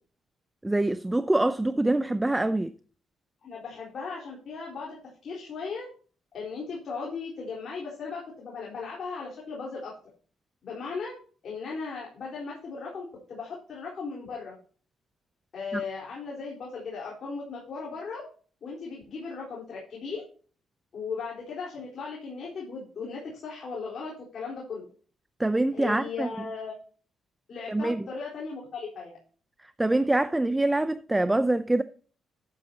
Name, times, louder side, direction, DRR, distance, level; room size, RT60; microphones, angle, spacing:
voice 1, 0.6-2.7 15.7-15.8 25.4-26.3 27.7-28.1 29.8-31.8, right 2 dB, 10° right, 0.5 m, -25 dB
voice 2, 3.4-5.0 5.2-5.9 6.3-9.9 10.6-11.1 11.4-14.5 15.5-18.2 18.6-20.2 20.9-24.8 25.7-26.7 27.5-29.2 31.2-31.4, left 4 dB, 55° left, 4.1 m, -37 dB
12.5 x 8.9 x 2.8 m
cardioid pair, 90°, 0 cm